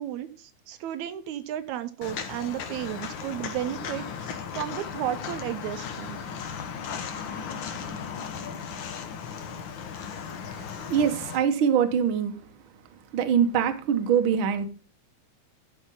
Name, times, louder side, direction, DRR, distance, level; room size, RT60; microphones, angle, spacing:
voice 1, 0.0-6.2, right 12 dB, 80° right, 11 dB, 1.9 m, -33 dB
Walk footsteps, 2.0-11.4, left 7 dB, 65° left, 1.2 m, -36 dB
voice 2, 10.9-12.3 13.1-14.7, right 8 dB, 60° right, 8 dB, 1.3 m, -23 dB
13.0 x 4.6 x 5.4 m, 0.38 s
omnidirectional pair, 3.4 m